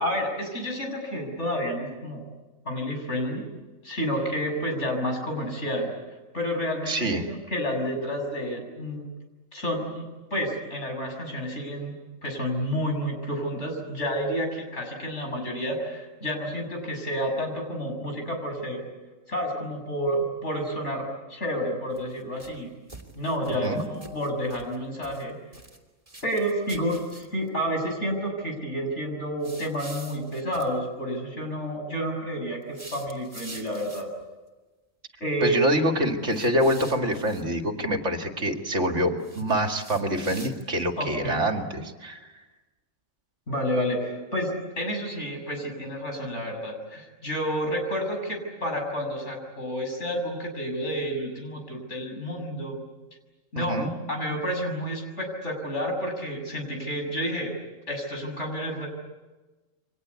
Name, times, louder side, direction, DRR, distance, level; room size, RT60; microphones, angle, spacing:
voice 1, 0.0-2.2 2.7-3.4 3.8-5.9 6.3-9.0 9.5-11.9 12.2-18.8 19.3-22.7 23.2-25.4 26.2-34.1 35.2-35.6 41.0-41.4 43.5-52.8 53.5-53.8 54.1-57.5 57.9-58.9, equal, 60° left, 3 dB, 7.2 m, -30 dB
voice 2, 6.9-7.2 23.6-23.8 35.4-42.3 53.6-53.9, equal, 65° right, 5 dB, 2.5 m, -26 dB
sound 1, 21.9-22.6 22.9-24.8 25.0-25.8 26.1-27.5 29.4-30.7 32.6-34.2 36.3-37.4 39.2-40.9, right 2 dB, 25° right, 3.4 m, -46 dB
29.0 x 24.5 x 8.3 m, 1.2 s
omnidirectional pair, 1.4 m